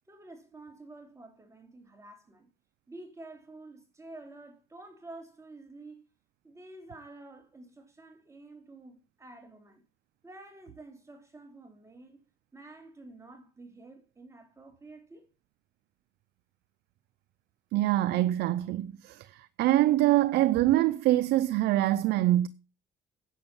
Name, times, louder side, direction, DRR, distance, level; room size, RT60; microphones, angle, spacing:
voice 1, 0.1-2.5 2.9-6.0 6.4-9.8 10.2-12.2 12.5-15.3, right 2 dB, 15° right, 3.1 m, -49 dB
voice 2, 17.7-22.5, right 15 dB, 75° right, 0.6 m, -24 dB
10.0 x 7.9 x 5.5 m
cardioid pair, 110°, 17 cm